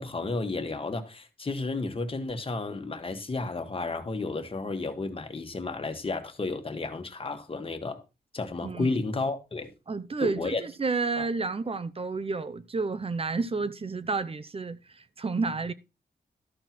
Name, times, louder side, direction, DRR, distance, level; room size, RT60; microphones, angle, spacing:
voice 1, 0.0-8.0 8.3-9.7 10.2-10.6 11.2-11.3, left 3 dB, 30° left, 1.6 m, -32 dB
voice 2, 8.6-9.0 9.9-15.7, right 4 dB, 35° right, 0.7 m, -30 dB
13.0 x 4.4 x 6.1 m
wide cardioid pair, 135°, 17 cm